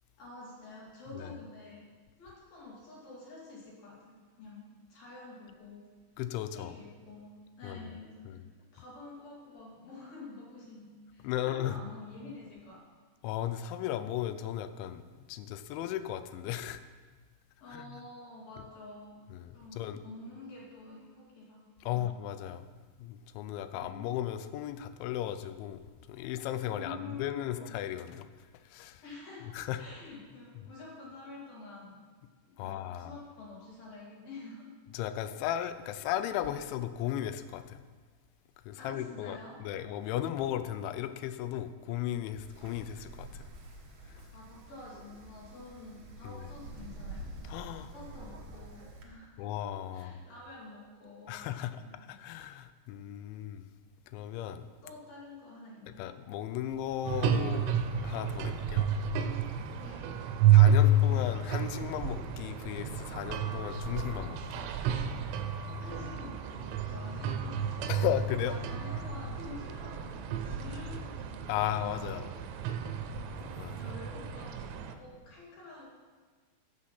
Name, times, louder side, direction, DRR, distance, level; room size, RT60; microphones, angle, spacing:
voice 1, 0.2-1.9 2.2-5.9 6.5-8.4 8.7-12.8 17.6-19.2 19.5-21.7 21.9-22.1 23.7-24.2 26.7-27.8 29.0-32.0 32.4-34.7 38.8-39.6 44.3-47.6 47.9-49.5 49.9-51.5 51.8-52.2 54.8-56.1 59.8-60.1 65.8-67.9 68.4-72.2 73.8-76.0, left 3 dB, 55° left, -5 dB, 4.1 m, -48 dB
voice 2, 6.2-6.7 7.6-7.8 8.3-8.4 11.2-11.8 13.2-15.0 15.3-16.8 17.7-17.9 19.3-20.0 21.8-22.6 23.0-25.8 26.1-28.3 28.7-29.0 29.5-29.8 32.6-33.1 34.9-37.8 38.7-43.5 44.1-44.2 46.2-46.4 47.5-47.9 49.4-50.2 51.3-51.8 52.1-53.6 54.1-54.7 56.0-57.7 58.0-58.9 60.5-64.6 67.9-68.6 71.5-72.3 73.4-73.8, left 11 dB, 80° left, 11 dB, 2.9 m, -35 dB
Wind, 42.4-49.0, right 2 dB, 60° right, 2.0 m, -47 dB
sound 1, 57.0-74.9, right 5 dB, 90° right, 3.1 m, -30 dB
15.0 x 7.6 x 5.8 m, 1.5 s
omnidirectional pair, 5.5 m